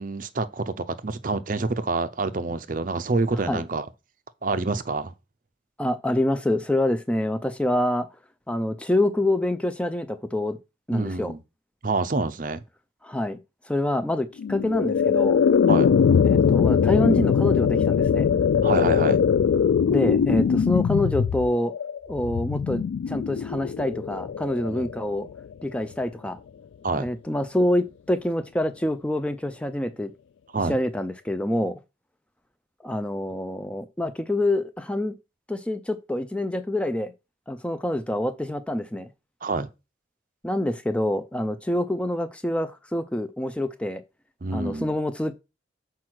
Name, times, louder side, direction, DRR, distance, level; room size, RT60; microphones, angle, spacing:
voice 1, 0.0-3.9 4.4-5.1 10.9-11.4 11.8-12.6 15.7-15.9 18.6-19.2 24.7-24.9 26.8-27.1 30.5-30.8 39.4-39.7 44.4-44.9, right 3 dB, 45° right, 0.6 m, -27 dB
voice 2, 5.8-8.1 8.5-10.6 10.9-11.3 13.0-13.4 13.6-15.4 16.2-18.3 19.9-21.7 22.1-25.3 25.6-26.4 27.0-30.1 30.7-31.8 32.8-35.1 35.5-37.1 37.5-39.1 40.4-44.0 44.5-45.3, left 1 dB, 5° left, 0.4 m, -26 dB
sound 1, 14.4-25.5, left 7 dB, 85° left, 0.3 m, -21 dB
6.1 x 4.7 x 6.2 m
head